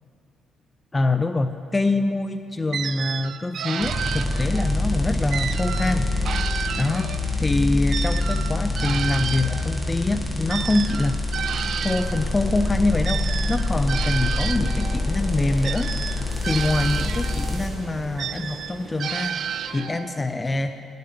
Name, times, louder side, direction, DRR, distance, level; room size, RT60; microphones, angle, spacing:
voice 1, 0.9-6.1 6.8-11.2 11.8-15.9 16.4-19.4 19.7-20.8, left 2 dB, 20° left, 10 dB, 0.4 m, -25 dB
sound 1, 2.7-4.8 5.3-7.4 7.9-12.2 13.0-15.0 15.6-17.6 18.2-20.2, right 8 dB, 65° right, 0.4 m, -31 dB
sound 2, 3.8-17.6, left 2 dB, 5° left, 1.9 m, -26 dB
sound 3, 11.3-19.9, right 2 dB, 40° right, 1.8 m, -42 dB
9.9 x 9.2 x 7.5 m, 2.7 s
cardioid pair, 90°, 0 cm